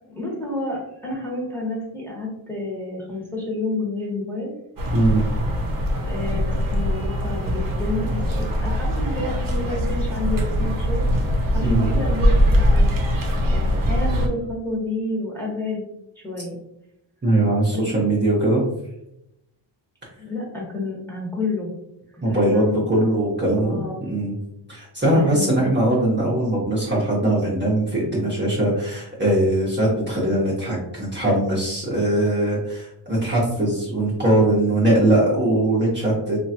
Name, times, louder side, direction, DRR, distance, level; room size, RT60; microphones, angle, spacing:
voice 1, 0.0-4.5 6.1-11.1 11.5-12.9 13.4-15.8 16.2-16.6 17.7-17.8 20.2-21.7 22.3-22.8 23.6-24.0 25.1-25.7 32.3-32.4, left 2 dB, 5° left, -4 dB, 1.3 m, -29 dB
sound 1, 4.8-14.3, equal, 45° right, 0.8 m, -22 dB
voice 2, 4.9-5.2 11.6-11.9 17.2-18.6 22.2-24.3 24.7-36.4, right 1 dB, 20° right, -7 dB, 1.0 m, -21 dB
2.9 x 2.5 x 2.8 m, 0.81 s
cardioid pair, 90°, 48 cm